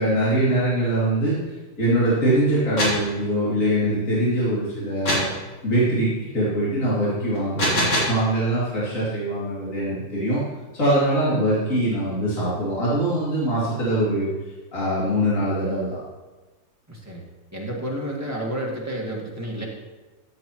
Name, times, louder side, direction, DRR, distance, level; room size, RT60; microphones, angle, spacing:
voice 1, 0.0-5.2 5.6-10.4 10.7-14.3 14.7-16.0, right 1 dB, 45° left, -9 dB, 3.1 m, -23 dB
sound 1, 2.5-3.1 5.1-5.4 7.4-8.2, equal, 90° left, 3.8 m, -23 dB
voice 2, 16.9-17.2 17.5-19.7, right 1 dB, 10° right, -4 dB, 1.6 m, -30 dB
13.5 x 8.4 x 3.0 m, 1.2 s
omnidirectional pair, 2.1 m